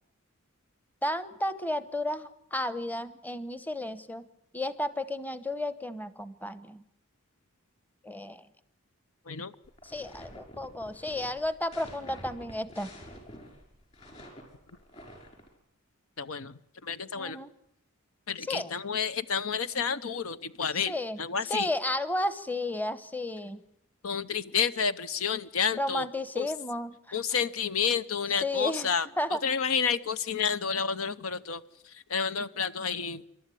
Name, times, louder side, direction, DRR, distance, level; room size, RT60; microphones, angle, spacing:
voice 1, 1.0-4.2 4.5-6.8 8.0-8.5 9.8-12.9 17.1-17.5 18.4-18.7 20.9-21.2 21.4-23.6 25.8-27.2 28.4-28.9 29.2-29.4, left 1 dB, 10° left, 13 dB, 1.0 m, -33 dB
sound 1, 9.6-15.5, equal, 30° left, 5.9 m, -48 dB
voice 2, 16.2-16.5 16.8-17.4 18.3-21.7 24.0-26.1 26.4-26.5 27.1-29.1 29.4-33.2, left 6 dB, 75° left, 14 dB, 0.8 m, -30 dB
27.5 x 12.5 x 9.9 m, 0.78 s
head